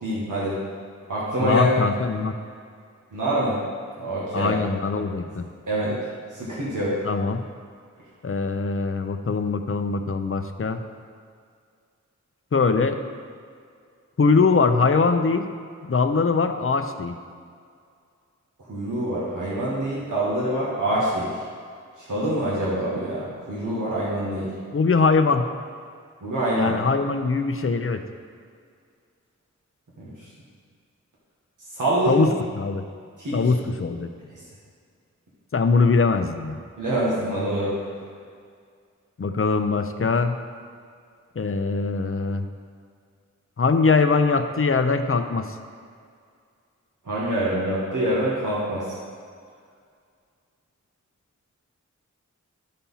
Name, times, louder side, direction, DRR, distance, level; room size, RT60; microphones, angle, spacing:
voice 1, 0.0-0.6 1.1-1.8 3.1-3.6 4.0-4.6 5.7-6.0 6.3-6.9 18.7-21.3 22.1-24.5 26.2-26.8 30.0-30.1 31.8-32.2 33.2-33.4 36.8-37.7 47.1-48.9, right 1 dB, 90° right, -8 dB, 1.7 m, -25 dB
voice 2, 1.4-2.4 4.3-5.5 7.0-7.4 8.2-10.8 12.5-13.0 14.2-15.5 15.8-17.2 24.7-25.4 26.6-28.0 32.1-32.8 33.3-34.1 35.5-36.6 39.2-40.4 41.4-42.5 43.6-45.5, left 4 dB, 45° left, 7 dB, 0.6 m, -22 dB
11.5 x 4.3 x 5.6 m, 2.2 s
wide cardioid pair, 60°, 30 cm